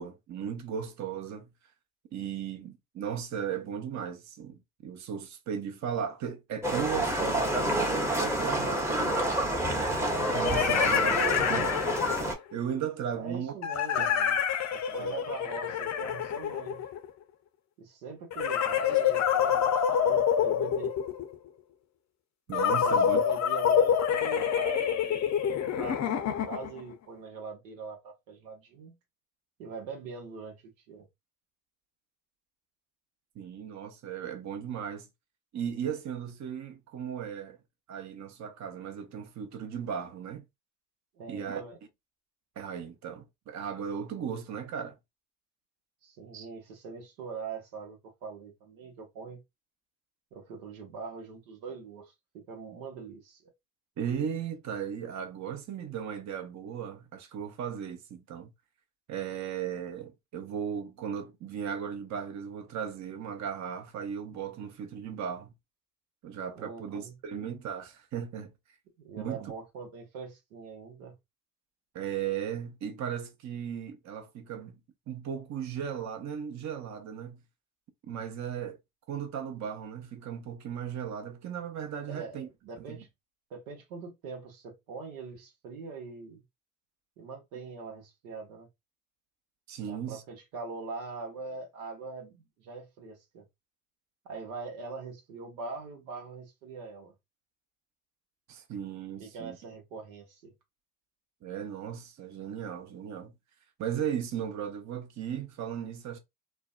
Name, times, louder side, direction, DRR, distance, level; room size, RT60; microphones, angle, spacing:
voice 1, 0.0-1.5 2.1-9.4 9.9-11.8 12.2-13.5 14.0-14.1 15.0-15.1 22.5-23.2 33.4-35.1 35.5-37.6 37.9-40.4 41.3-41.6 42.6-45.0 46.3-46.5 54.0-58.5 59.1-65.5 66.2-68.5 69.2-69.5 71.9-74.8 75.1-77.4 78.0-78.8 79.1-82.5 82.9-83.0 89.7-90.2 98.5-99.6 101.4-103.3 103.8-106.2, right 8 dB, 45° right, 0.7 m, -36 dB
Livestock farm animals working animals, 6.6-12.3, right 1 dB, 5° right, 0.7 m, -28 dB
sound 1, 8.5-8.6 10.0-12.4 13.6-17.1 18.3-21.3 22.5-26.8, left 8 dB, 45° left, 0.6 m, -27 dB
voice 2, 13.2-14.4 14.7-16.8 17.8-20.9 22.8-29.0 29.6-31.1 41.1-41.8 46.0-49.4 50.3-53.5 66.6-67.1 69.0-71.2 82.1-83.1 83.5-86.4 87.2-88.7 89.9-93.4 94.2-97.1 99.2-100.5, right 4 dB, 85° right, 0.8 m, -42 dB
2.5 x 2.1 x 2.3 m
hypercardioid pair, 55°, 40 cm